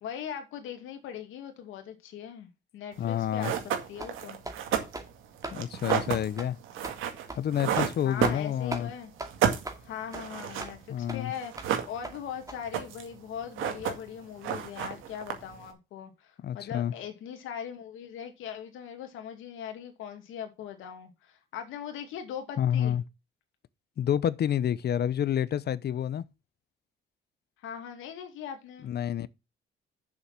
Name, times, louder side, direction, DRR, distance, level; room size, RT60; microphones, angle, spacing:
voice 1, 0.0-3.5 3.9-4.4 8.0-9.1 9.8-23.0 27.6-28.9, left 8 dB, 90° left, 2.4 m, -40 dB
voice 2, 3.0-3.5 5.5-6.6 7.3-8.9 10.9-11.3 16.4-16.9 22.6-23.0 24.0-26.2 28.8-29.3, left 10 dB, 55° left, 0.7 m, -28 dB
sound 1, 3.0-3.1 3.4-8.9 9.2-10.8 11.0-11.1 11.3-12.3 12.6-13.2 13.4-14.2 14.4-15.7, right 9 dB, 90° right, 2.1 m, -31 dB
sound 2, 3.5-3.7 4.0-4.2 4.4-4.6 4.9-5.1 5.4-5.6 5.9-6.0 6.4-6.5 6.8-7.0 7.3-7.4 7.8-7.9 8.2-8.4 8.7-8.9 9.2-9.3 9.6-9.8 10.1-10.2 10.6-10.7 11.1-11.2 11.6-11.7 12.0-12.2 12.5-12.6, right 2 dB, 15° right, 2.3 m, -38 dB
7.2 x 6.5 x 6.0 m
cardioid pair, 90°, 20 cm